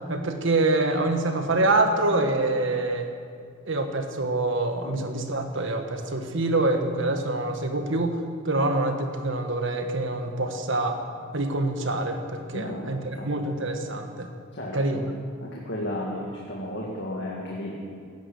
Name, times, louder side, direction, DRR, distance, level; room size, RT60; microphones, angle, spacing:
voice 1, 0.1-3.1 3.7-11.0 11.3-14.3 14.7-15.0, right 2 dB, 60° right, 5 dB, 1.5 m, -26 dB
voice 2, 12.5-13.6 14.5-15.1 15.4-17.7, left 1 dB, 55° left, -3 dB, 2.1 m, -34 dB
17.0 x 10.5 x 7.1 m, 2.2 s
head